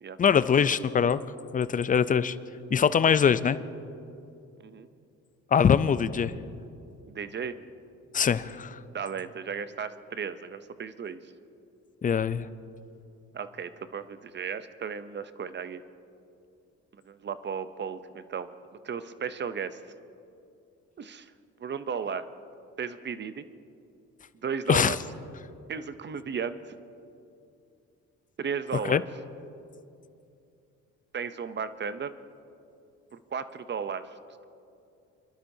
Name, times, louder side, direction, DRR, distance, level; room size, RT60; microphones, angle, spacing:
voice 1, 0.2-1.2 1.5-2.4 2.7-3.6 5.5-6.3 8.1-8.8 12.0-12.5 24.7-25.0 28.8-29.0, left 7 dB, 30° left, 15 dB, 0.4 m, -23 dB
voice 2, 7.1-7.6 8.9-11.2 13.3-15.8 17.1-18.5 18.8-19.8 21.0-21.3 21.6-22.3 22.8-23.4 24.4-25.0 25.7-26.8 28.4-29.0 31.1-32.1 33.3-34.1, right 6 dB, 35° right, 12 dB, 0.6 m, -35 dB
25.0 x 12.0 x 2.7 m, 2.6 s
cardioid pair, 90°, 30 cm